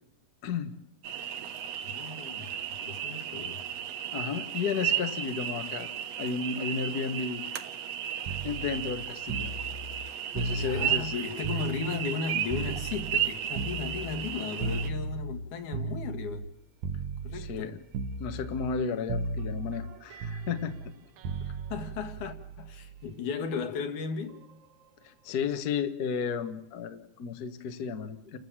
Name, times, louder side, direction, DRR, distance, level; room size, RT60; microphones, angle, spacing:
voice 1, 0.4-0.7 4.1-5.9 6.2-7.4 8.4-9.5 10.3-11.1 17.3-17.8 18.2-20.7 25.0-28.4, left 6 dB, 50° left, 7 dB, 1.2 m, -33 dB
sound 1, 1.0-14.9, right 10 dB, 65° right, 2.1 m, -34 dB
voice 2, 1.8-2.5 2.9-3.6 10.5-16.5 17.2-17.8 21.4-24.4, left 5 dB, 85° left, 6 dB, 3.2 m, -36 dB
sound 2, 8.3-12.2 12.5-16.5 16.8-17.7 17.9-18.8 19.1-23.1 24.3-24.5, right 3 dB, 80° right, 2.5 m, -36 dB
29.5 x 12.5 x 7.4 m, 0.91 s
omnidirectional pair, 3.4 m